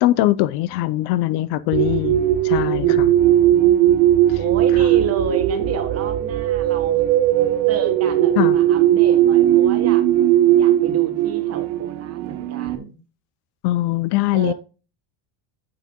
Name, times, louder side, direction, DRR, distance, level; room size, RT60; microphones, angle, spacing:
voice 1, 0.0-3.1 8.4-8.6 13.6-14.5, left 16 dB, 60° left, 0.5 m, -21 dB
sound 1, 1.7-12.8, right 12 dB, 70° right, 1.0 m, -18 dB
voice 2, 2.6-4.0 4.4-7.0 7.7-10.1 10.5-13.0 14.3-14.5, right 6 dB, 30° right, 1.3 m, -31 dB
8.9 x 7.4 x 2.2 m
cardioid pair, 165°, 46 cm